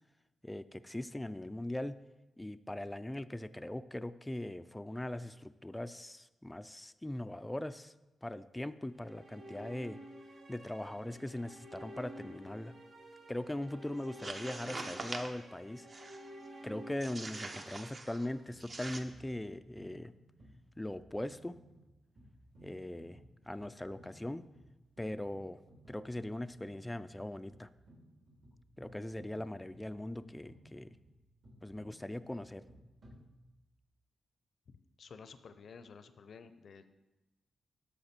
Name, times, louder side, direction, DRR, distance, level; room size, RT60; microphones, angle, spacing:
voice 1, 0.4-2.0 2.4-7.9 8.2-10.0 10.5-12.7 13.3-15.9 16.6-20.1 20.8-21.6 22.6-23.2 23.4-24.4 25.0-25.6 25.9-27.7 28.8-31.0 31.6-32.6, left 1 dB, 10° left, 12 dB, 0.3 m, -40 dB
sound 1, 8.8-19.0, right 1 dB, 75° right, 1.7 m, -52 dB
sound 2, 14.0-15.4 15.9-16.3 17.0-18.3 18.6-19.0, right 2 dB, 40° right, 0.8 m, -43 dB
sound 3, 18.5-33.8, equal, 55° right, 3.1 m, -60 dB
voice 2, 35.0-36.9, left 5 dB, 60° left, 12 dB, 0.6 m, -52 dB
12.5 x 4.8 x 4.4 m, 1.1 s
cardioid pair, 80°, 0 cm